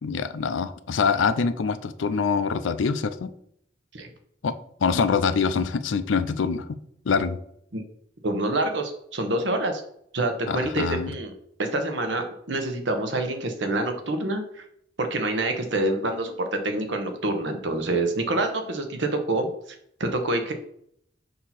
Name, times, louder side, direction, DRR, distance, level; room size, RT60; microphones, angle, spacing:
voice 1, 0.0-3.3 4.4-4.5 4.8-6.7 7.1-7.4 10.5-11.1, left 5 dB, 75° left, 12 dB, 0.5 m, -24 dB
voice 2, 8.2-9.8 10.1-11.3 11.6-14.6 15.0-19.5 20.0-20.5, right 2 dB, 65° right, 6 dB, 1.0 m, -26 dB
6.5 x 2.8 x 5.8 m, 0.69 s
head